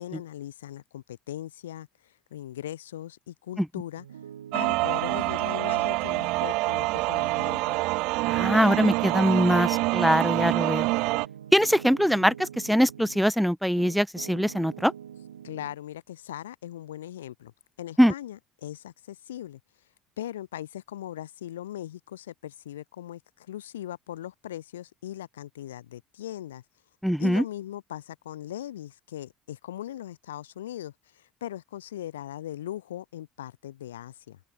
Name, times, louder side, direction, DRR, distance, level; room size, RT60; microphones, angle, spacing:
voice 1, 0.0-4.1 4.5-7.8 15.4-17.5 17.8-19.6 20.2-26.6 27.2-34.4, left 12 dB, 70° left, 2.4 m, -39 dB
Piano, 4.0-13.3 13.8-15.8, right 9 dB, 75° right, 1.5 m, -46 dB
sound 1, 4.5-11.3, right 22 dB, 55° right, 0.5 m, -26 dB
voice 2, 8.3-10.9 11.5-14.9 18.0-18.1 27.0-27.4, equal, ahead, 0.3 m, -22 dB
open air
figure-of-eight pair, 60°, 0 cm